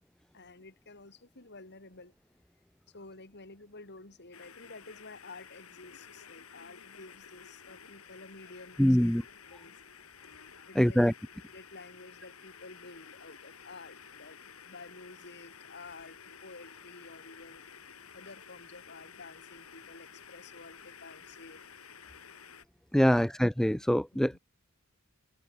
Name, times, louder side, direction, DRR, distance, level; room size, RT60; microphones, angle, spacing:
voice 1, 0.3-2.1 2.9-9.1 9.5-9.8 10.7-11.1 11.5-17.7 18.1-21.6 24.3-24.4, left 3 dB, 55° left, 4.1 m, -51 dB
sound 1, 4.3-22.6, left 7 dB, 80° left, 2.7 m, -52 dB
voice 2, 8.8-9.2 10.8-11.1 22.9-24.4, equal, ahead, 0.4 m, -24 dB
head